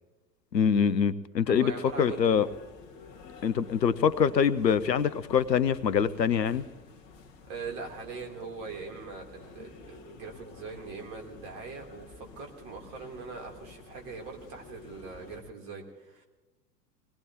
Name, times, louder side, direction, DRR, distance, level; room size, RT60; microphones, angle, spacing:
voice 1, 0.5-2.5 3.4-6.6, left 7 dB, 80° left, 18 dB, 0.8 m, -24 dB
voice 2, 1.5-2.6 7.5-16.3, right 4 dB, 45° right, 1 dB, 3.5 m, -42 dB
sound 1, 1.8-15.4, left 4 dB, 45° left, 2.1 m, -51 dB
25.0 x 19.0 x 3.0 m, 1.1 s
figure-of-eight pair, 95°, 49 cm